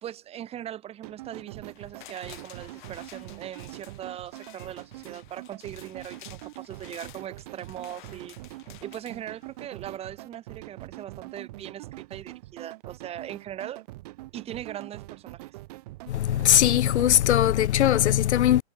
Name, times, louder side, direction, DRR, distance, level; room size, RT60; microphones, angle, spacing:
voice 1, 0.0-8.4 8.8-13.8 14.3-15.6, right 11 dB, 20° right, 3.1 m, -40 dB
sound 1, 1.0-17.7, right 19 dB, 35° right, 1.0 m, -44 dB
sound 2, 1.7-9.8 10.2-10.3, left 15 dB, 45° left, 2.9 m, -51 dB
voice 2, 16.1-18.6, left 12 dB, 80° left, 0.5 m, -20 dB
hypercardioid pair, 145°, 34 cm